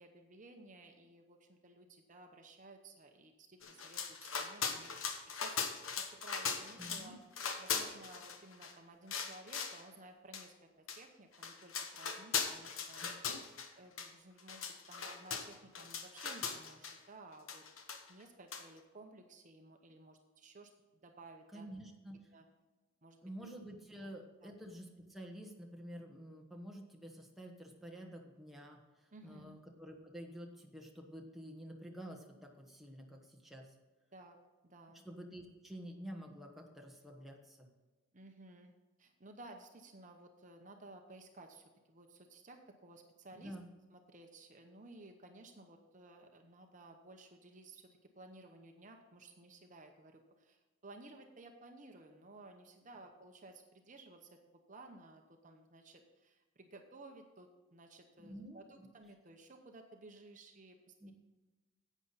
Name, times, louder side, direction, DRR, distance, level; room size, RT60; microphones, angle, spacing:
voice 1, 0.0-5.7 6.0-7.2 7.6-13.1 13.8-20.7 21.0-21.7 22.3-22.4 23.0-23.5 24.0-24.1 24.4-24.5 29.1-29.6 34.1-34.4 34.6-35.1 38.1-38.7 39.0-43.5 43.9-47.9 48.2-54.4 54.7-61.1, right 2 dB, 40° right, 4 dB, 0.8 m, -56 dB
sound 1, 3.6-7.1 7.3-8.7 9.1-9.8 10.3-10.4 10.9-11.0 11.3-13.7 14.0-14.1 14.4-17.0 17.5-18.2 18.5-18.6, left 6 dB, 85° left, 1.1 m, -39 dB
voice 2, 6.8-7.1 13.0-13.4 21.5-22.2 23.2-33.7 35.0-37.7 43.3-43.7 58.2-58.9 61.0-61.1, equal, ahead, 0 dB, 1.2 m, -50 dB
11.0 x 8.3 x 4.0 m, 1.2 s
head